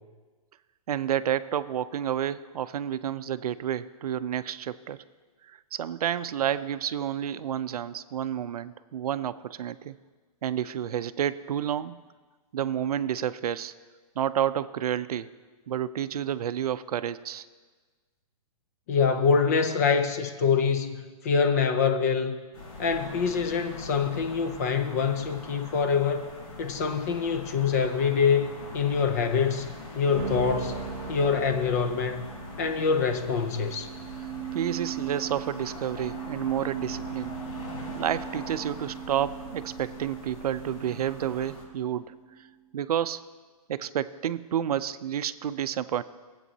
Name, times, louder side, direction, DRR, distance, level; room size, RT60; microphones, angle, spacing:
voice 1, 0.9-5.0 5.5-10.0 10.4-12.0 12.5-13.7 14.2-15.3 15.7-17.4 34.5-37.4 37.9-42.2 42.7-43.2 43.7-46.0, right 10 dB, 75° right, 14 dB, 0.5 m, -30 dB
voice 2, 18.9-22.4 22.8-26.3 26.6-28.5 28.7-30.8 31.1-32.3 32.6-33.9, left 6 dB, 25° left, 7 dB, 0.5 m, -25 dB
sound 1, 22.5-41.6, left 2 dB, 70° left, 3.1 m, -42 dB
sound 2, 30.1-42.4, right 8 dB, 20° right, 0.8 m, -39 dB
19.0 x 8.2 x 2.8 m, 1.4 s
hypercardioid pair, 170°, 20 cm